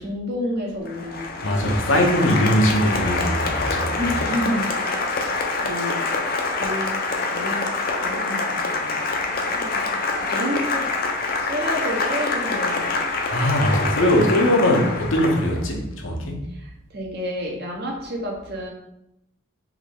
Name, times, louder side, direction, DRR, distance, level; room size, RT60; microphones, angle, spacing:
voice 1, 0.0-1.7 4.0-4.7 5.1-7.6 8.0-10.0 10.3-10.8 11.3-13.0 16.5-18.7, equal, 50° right, 0 dB, 0.9 m, -30 dB
Applause, 0.9-15.7, left 3 dB, 50° left, 0.5 m, -25 dB
voice 2, 1.4-4.2 13.3-16.4, equal, 75° left, 2 dB, 0.8 m, -21 dB
3.6 x 3.2 x 3.5 m, 0.85 s
head